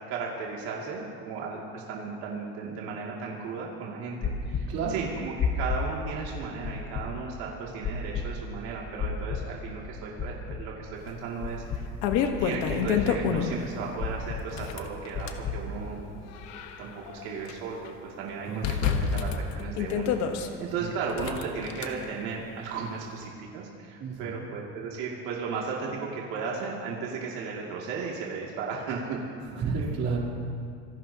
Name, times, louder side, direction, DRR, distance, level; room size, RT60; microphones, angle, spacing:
voice 1, 0.1-11.6 12.4-16.0 16.8-29.2, right 5 dB, 80° right, -3 dB, 2.5 m, -35 dB
sound 1, 4.2-4.6 5.4-5.8 6.6-7.0 7.8-8.2 9.0-9.4 10.2-10.6 11.4-11.8 12.7-13.1 14.0-14.4 15.1-15.6, left 7 dB, 35° left, 1.2 m, -30 dB
voice 2, 4.7-5.0 18.5-19.1 20.8-20.9 24.0-24.4 29.5-30.2, right 5 dB, 50° right, -3 dB, 3.3 m, -31 dB
sound 2, 11.1-11.2 11.7-13.7 14.4-15.4 16.1-17.5 17.8-17.9 18.6-20.5 21.1-21.9, left 7 dB, 60° left, 1.2 m, -28 dB
26.5 x 17.0 x 2.9 m, 2.4 s
cardioid pair, 160°, 31 cm